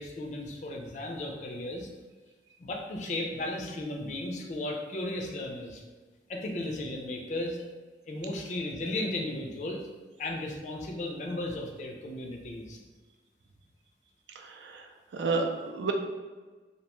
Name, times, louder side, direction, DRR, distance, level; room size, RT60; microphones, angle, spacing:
voice 1, 0.0-1.9 2.6-5.8 6.3-7.6 8.1-9.9 10.2-12.8, left 1 dB, 40° left, 1 dB, 0.4 m, -35 dB
voice 2, 14.4-14.9 15.1-15.9, right 4 dB, 85° right, 4 dB, 0.4 m, -31 dB
2.6 x 2.2 x 2.9 m, 1.3 s
head